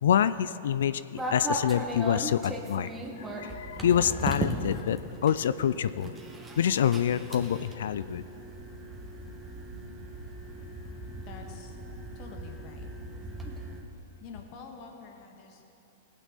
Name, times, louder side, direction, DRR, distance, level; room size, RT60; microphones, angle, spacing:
voice 1, 0.0-2.9 3.2-6.1 6.6-8.2, left 9 dB, 70° left, 15 dB, 0.3 m, -26 dB
sound 1, 1.2-13.8, right 1 dB, 10° right, 1.8 m, -37 dB
voice 2, 11.2-11.8 12.2-12.9 13.5-13.6 14.2-15.7, left 5 dB, 45° left, 2 dB, 2.0 m, -47 dB
19.0 x 9.0 x 4.2 m, 2.9 s
hypercardioid pair, 105°, 0 cm